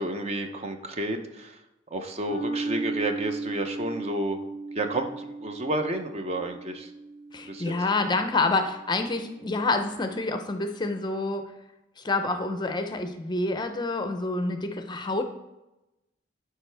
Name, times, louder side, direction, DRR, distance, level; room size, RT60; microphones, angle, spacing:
voice 1, 0.0-1.6 1.9-4.4 4.7-6.9 7.5-7.7 9.5-9.6, right 1 dB, 35° right, 6 dB, 0.6 m, -31 dB
sound 1, 2.3-9.0, right 3 dB, 80° right, 3.0 m, -36 dB
voice 2, 7.3-11.5 12.0-15.2, left 3 dB, 25° left, 7 dB, 0.5 m, -28 dB
12.0 x 4.7 x 3.3 m, 0.98 s
head